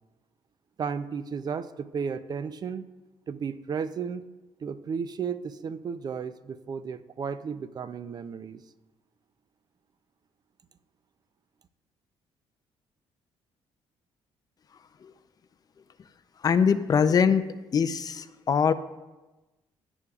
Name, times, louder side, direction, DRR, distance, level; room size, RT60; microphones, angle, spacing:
voice 1, 0.8-2.8 3.3-4.2 4.6-8.6, right 6 dB, 40° right, 13 dB, 0.5 m, -34 dB
voice 2, 16.4-17.5 17.7-18.7, left 6 dB, 40° left, 11 dB, 0.5 m, -22 dB
17.0 x 10.0 x 2.4 m, 1.1 s
cardioid pair, 125°, 10 cm